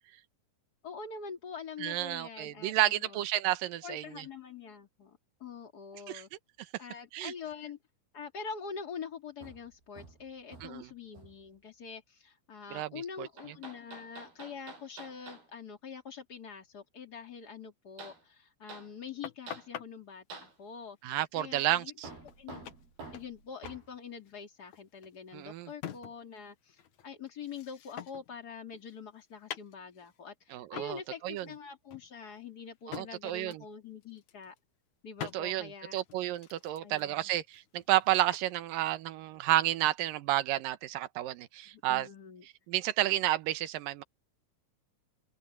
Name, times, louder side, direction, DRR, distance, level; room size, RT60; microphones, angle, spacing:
voice 1, 0.8-3.2 3.8-6.3 6.8-7.8 8.1-21.9 22.2-22.7 23.1-34.5 35.0-36.0 36.8-37.3 41.7-42.5, left 6 dB, 30° left, 2.5 m, -45 dB
voice 2, 1.8-4.2 6.1-6.2 7.1-7.3 10.6-10.9 12.7-13.3 21.0-22.1 25.3-25.7 30.5-31.5 32.9-33.6 35.3-42.1 42.7-44.0, right 14 dB, 70° right, 2.6 m, -31 dB
Hammer, 9.4-10.9 11.1-11.5 13.4-15.5 18.0-18.2 18.7-18.9 19.5-19.7 20.3-20.6 22.0-23.9, right 3 dB, 90° right, 9.4 m, -49 dB
sound 1, 19.2-19.9 22.0-22.1 22.3-22.4 22.6-23.4 23.6-23.8 24.1-26.4 26.7-28.4 28.7-30.2 30.8-31.0 31.4-31.6 31.9-33.1 33.5-33.7 34.0-34.6 35.2-35.4 35.9-38.5, left 10 dB, 60° left, 2.4 m, -45 dB
open air
omnidirectional pair, 4.3 m